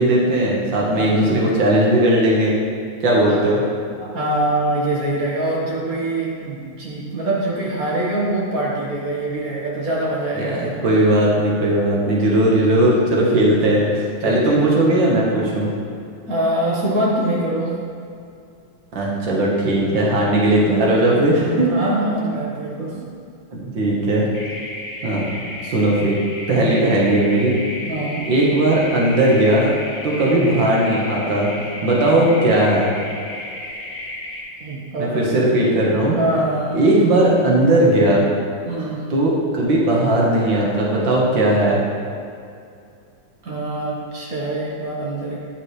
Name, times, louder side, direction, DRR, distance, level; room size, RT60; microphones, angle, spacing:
voice 1, 0.0-2.5 3.0-3.6 10.3-15.7 19.0-21.7 23.5-24.3 25.0-25.3 25.6-26.2 26.5-27.5 28.2-29.8 30.0-31.5 31.8-32.9 35.0-36.2 36.7-38.2 39.1-41.8, right 1 dB, 65° right, -4 dB, 2.1 m, -17 dB
voice 2, 4.0-10.8 14.2-14.6 16.3-17.7 21.4-23.0 26.5-26.8 27.9-28.3 30.2-30.5 32.0-32.2 34.6-35.7 36.1-36.8 38.6-39.0 43.4-45.4, right 1 dB, 45° right, -4 dB, 1.9 m, -24 dB
sound 1, 24.3-34.4, left 1 dB, 50° left, 1.9 m, -33 dB
10.5 x 6.5 x 3.2 m, 2.4 s
omnidirectional pair, 2.2 m